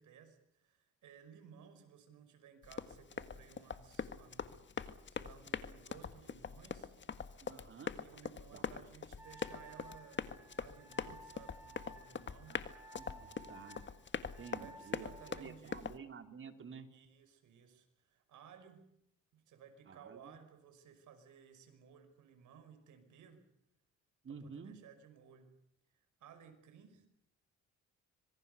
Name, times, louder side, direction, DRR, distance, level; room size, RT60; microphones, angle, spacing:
voice 1, 0.0-6.9 7.4-7.5 7.9-12.6 14.5-15.8 16.9-18.8 19.3-23.5 24.3-25.6 26.2-27.1, right 7 dB, 80° right, 7 dB, 5.9 m, -59 dB
Run, 2.6-16.0, left 6 dB, 40° left, 1.7 m, -43 dB
voice 2, 7.4-7.9 8.5-8.6 12.5-13.8 14.4-16.9 19.9-20.4 24.2-24.8, right 6 dB, 40° right, 7 dB, 3.1 m, -51 dB
Wind instrument woodwind instrument, 9.2-15.5, right 1 dB, 10° right, 6.2 m, -56 dB
26.0 x 23.5 x 6.8 m, 0.76 s
cardioid pair, 90°, 30 cm